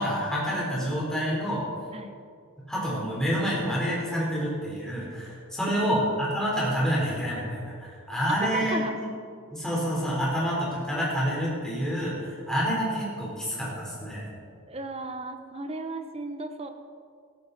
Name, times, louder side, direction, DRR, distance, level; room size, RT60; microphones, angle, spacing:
voice 1, 0.0-1.6 2.7-8.8 9.5-14.3, equal, 5° left, -6 dB, 3.9 m, -28 dB
voice 2, 8.3-8.9 14.7-16.7, right 3 dB, 30° right, 7 dB, 0.9 m, -34 dB
15.0 x 13.5 x 4.1 m, 2.2 s
head